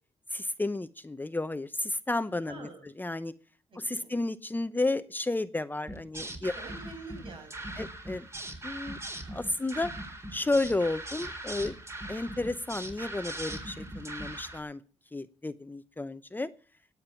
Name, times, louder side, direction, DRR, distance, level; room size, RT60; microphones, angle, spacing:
voice 1, 0.3-2.7 3.0-3.3 3.8-6.5 7.8-8.3 8.6-9.0 9.3-9.9 10.3-11.8 12.1-14.8 15.1-16.5, left 2 dB, 15° left, 12 dB, 0.8 m, -32 dB
voice 2, 2.5-2.9 3.7-4.1 6.4-7.8, right 3 dB, 50° right, 4 dB, 7.2 m, -47 dB
sound 1, 5.9-14.6, right 1 dB, 25° right, 4.5 m, -40 dB
17.5 x 9.5 x 5.9 m, 0.41 s
cardioid pair, 65°, 11 cm